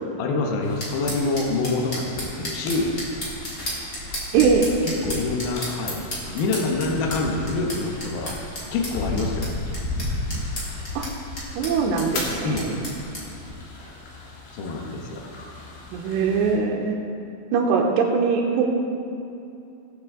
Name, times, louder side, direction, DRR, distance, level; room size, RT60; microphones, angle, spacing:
voice 1, 0.2-2.9 5.0-8.3 8.7-9.5 12.4-12.7 14.5-15.3, left 3 dB, 85° left, 0 dB, 2.1 m, -26 dB
sound 1, 0.6-16.5, left 2 dB, 65° left, 3.6 m, -35 dB
sound 2, 0.8-13.2, equal, 35° left, 1.6 m, -34 dB
voice 2, 4.3-4.7 11.0-11.1 11.6-12.8 15.9-17.0 17.5-18.7, right 5 dB, 90° right, 0 dB, 2.4 m, -21 dB
20.5 x 6.9 x 3.8 m, 2.6 s
omnidirectional pair, 5.9 m